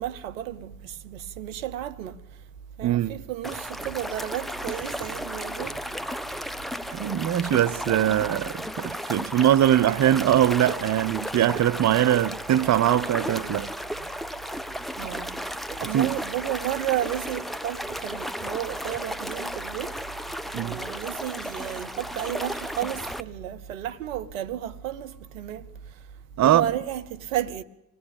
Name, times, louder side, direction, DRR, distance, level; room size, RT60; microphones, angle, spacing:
voice 1, 0.0-2.2 2.8-5.8 15.0-19.9 20.2-20.3 20.6-25.7 26.4-27.6, right 12 dB, 80° right, 0.9 m, -32 dB
voice 2, 2.8-3.2 6.9-13.7 15.8-16.1 20.5-20.8 26.4-26.6, right 11 dB, 45° right, 0.9 m, -22 dB
sound 1, 3.4-23.2, equal, ahead, 1.2 m, -34 dB
25.5 x 19.5 x 8.8 m
figure-of-eight pair, 45°, 40 cm